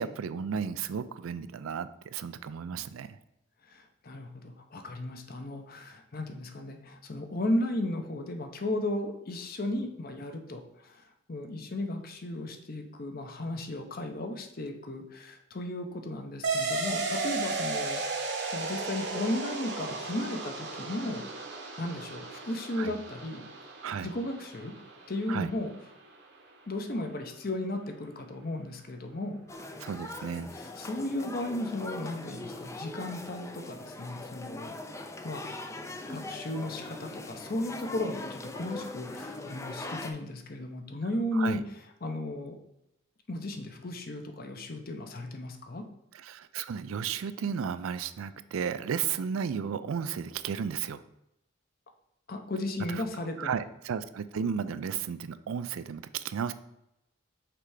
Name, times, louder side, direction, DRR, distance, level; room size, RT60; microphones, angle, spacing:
voice 1, 0.0-3.2 22.8-22.9 23.8-24.1 25.3-25.5 29.8-30.5 41.3-41.6 46.1-51.0 52.9-53.0 53.4-56.5, right 7 dB, 85° right, 13 dB, 0.4 m, -34 dB
voice 2, 3.7-21.2 21.8-23.4 24.0-24.7 25.1-25.7 26.7-29.7 30.5-34.7 35.2-35.4 36.1-41.6 42.0-42.6 43.3-45.8 52.3-53.5, left 1 dB, 45° left, 5 dB, 0.7 m, -35 dB
sound 1, 16.4-25.5, right 3 dB, 55° right, 0.9 m, -35 dB
sound 2, 29.5-40.1, left 2 dB, 15° left, 0.4 m, -41 dB
5.9 x 3.3 x 4.8 m, 0.84 s
head